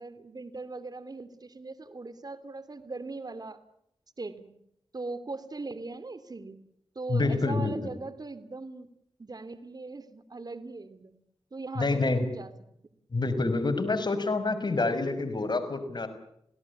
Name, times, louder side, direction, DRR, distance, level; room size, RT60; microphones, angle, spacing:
voice 1, 0.0-3.6 4.2-4.5 4.9-6.6 6.9-8.9 9.2-11.1 11.5-12.5, right 3 dB, 40° right, 13 dB, 2.8 m, -40 dB
voice 2, 7.1-7.7 11.8-12.2 13.1-16.1, left 3 dB, 50° left, 9 dB, 5.8 m, -27 dB
29.5 x 18.0 x 8.5 m, 0.77 s
cardioid pair, 55°, 10 cm